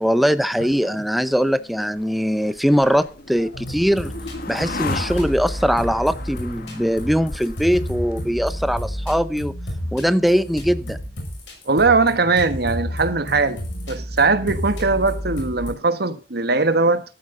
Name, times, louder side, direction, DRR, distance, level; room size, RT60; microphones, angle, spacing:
voice 1, 0.0-4.1 4.5-9.5 9.9-11.0, equal, ahead, 0.7 m, -21 dB
sound 1, 1.4-8.8, left 3 dB, 55° left, 1.6 m, -35 dB
sound 2, 3.5-15.7, equal, 85° left, 5.9 m, -31 dB
voice 2, 11.7-13.6 13.9-17.0, right 3 dB, 60° right, 1.5 m, -20 dB
13.5 x 13.0 x 3.9 m
head